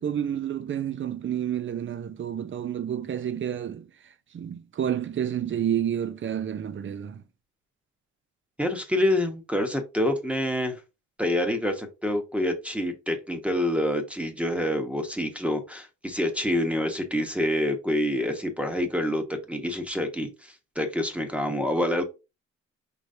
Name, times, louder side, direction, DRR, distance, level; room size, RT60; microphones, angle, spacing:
voice 1, 0.0-3.9 4.3-7.2, right 9 dB, 40° right, 0.6 m, -29 dB
voice 2, 8.6-10.8 11.2-22.0, left 1 dB, 5° right, 1.1 m, -27 dB
5.0 x 3.1 x 2.7 m
cardioid pair, 90°, 30 cm